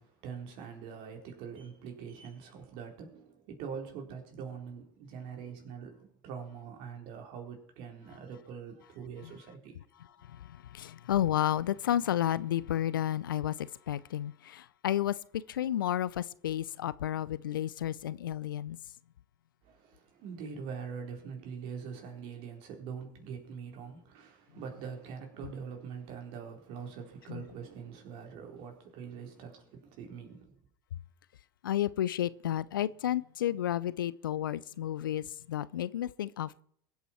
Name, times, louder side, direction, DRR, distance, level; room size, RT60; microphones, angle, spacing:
voice 1, 0.0-9.8 19.6-30.5, right 6 dB, 55° right, 4.1 m, -43 dB
voice 2, 10.7-15.1 15.5-18.8 27.3-27.4 31.6-36.6, left 11 dB, 80° left, 0.5 m, -31 dB
22.5 x 8.2 x 4.6 m
hypercardioid pair, 80°, 11 cm